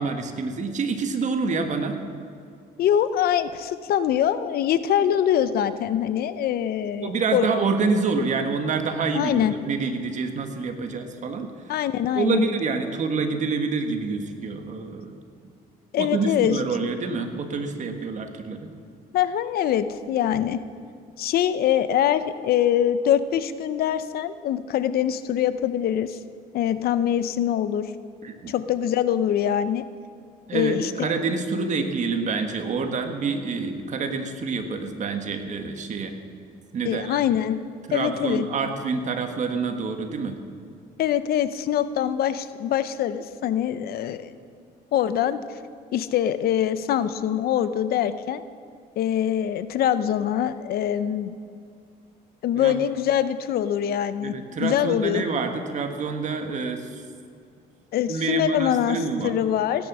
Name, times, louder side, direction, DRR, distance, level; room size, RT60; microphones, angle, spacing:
voice 1, 0.0-2.0 7.0-11.5 12.1-15.2 16.0-18.7 28.2-28.5 30.5-36.1 36.7-37.2 37.9-40.4 52.5-52.8 54.2-57.0 58.1-59.4, right 4 dB, 45° right, 6 dB, 1.6 m, -27 dB
voice 2, 2.8-7.5 9.1-9.5 11.7-12.4 15.9-16.6 19.1-20.6 21.2-26.2 26.5-27.9 28.5-29.8 30.5-30.9 36.8-37.6 37.9-38.5 41.0-44.3 44.9-45.4 45.9-48.4 49.0-51.4 52.4-54.3 54.6-55.2 57.9-59.9, left 10 dB, 65° left, 13 dB, 0.7 m, -23 dB
17.0 x 10.0 x 6.2 m, 2.4 s
cardioid pair, 110°, 17 cm